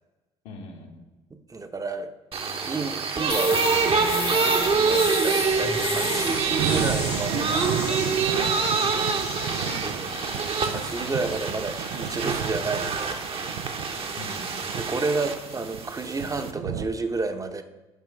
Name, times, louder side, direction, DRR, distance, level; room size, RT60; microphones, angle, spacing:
voice 1, 0.4-1.0 9.6-10.2 14.2-14.6, left 2 dB, 70° left, 1 dB, 1.8 m, -42 dB
voice 2, 1.5-2.1 2.7-8.8 9.8-10.1 10.3-13.6 14.8-17.6, right 3 dB, 25° right, 8 dB, 1.0 m, -32 dB
sound 1, 2.3-16.5, right 5 dB, 45° right, 1.2 m, -26 dB
sound 2, 3.3-14.9, left 6 dB, 50° left, 1.7 m, -36 dB
sound 3, 5.9-16.9, right 8 dB, 70° right, 0.6 m, -34 dB
9.3 x 5.4 x 5.2 m, 1.1 s
hypercardioid pair, 55°, 14 cm